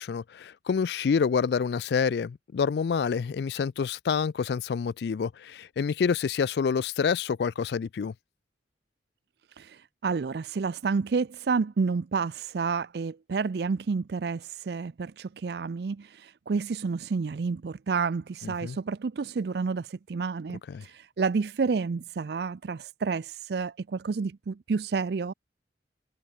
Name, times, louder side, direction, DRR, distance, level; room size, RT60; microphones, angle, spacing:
voice 1, 0.0-8.1 18.4-18.8 20.7-20.8, left 6 dB, 60° left, 0.3 m, -27 dB
voice 2, 9.6-25.3, right 5 dB, 60° right, 0.4 m, -30 dB
head